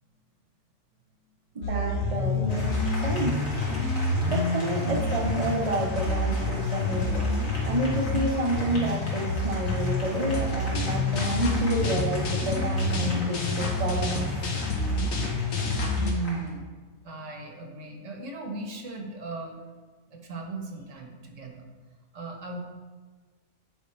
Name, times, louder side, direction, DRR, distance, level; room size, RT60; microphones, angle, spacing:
voice 1, 1.5-2.7 3.0-3.4 4.3-7.3 7.6-14.3, right 1 dB, 35° right, 1 dB, 0.6 m, -29 dB
sound 1, 1.6-16.1, left 2 dB, 85° left, 1.4 m, -28 dB
Applause, 2.5-16.5, left 1 dB, 65° left, 2.1 m, -40 dB
voice 2, 16.0-16.7 17.0-19.6 20.1-21.7 22.1-22.6, right 3 dB, 60° right, 2 dB, 1.3 m, -36 dB
9.3 x 5.0 x 3.2 m, 1.4 s
omnidirectional pair, 1.5 m